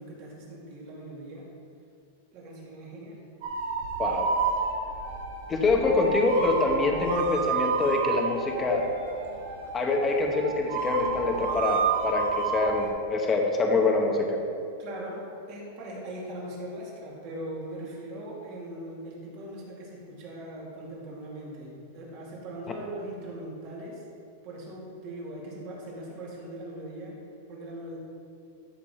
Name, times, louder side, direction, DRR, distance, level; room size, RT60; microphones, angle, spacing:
voice 1, 0.0-1.5 2.3-3.2 14.8-24.0 24.4-27.2 27.5-28.0, right 1 dB, 45° right, -4 dB, 2.5 m, -40 dB
sound 1, 3.4-12.9, right 5 dB, 70° right, 1.7 m, -30 dB
voice 2, 5.5-8.8 9.7-14.4, left 3 dB, 15° left, 2 dB, 1.0 m, -25 dB
13.5 x 5.9 x 4.4 m, 2.6 s
supercardioid pair, 160°, 0 cm